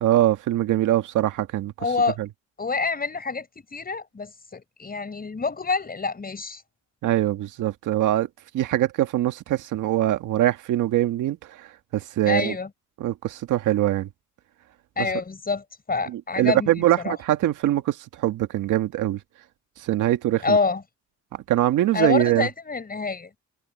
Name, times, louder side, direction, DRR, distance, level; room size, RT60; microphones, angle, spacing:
voice 1, 0.0-1.7 2.2-2.3 7.0-8.3 8.5-11.7 11.9-12.5 13.0-14.1 15.0-15.1 16.1-19.2 19.8-20.6 21.3-22.5, right 14 dB, 85° right, 1.8 m, -23 dB
voice 2, 1.8-2.2 2.6-6.6 12.3-12.7 15.0-17.2 20.4-20.8 21.9-23.3, left 4 dB, 30° left, 6.3 m, -27 dB
cardioid pair, 90°, 30 cm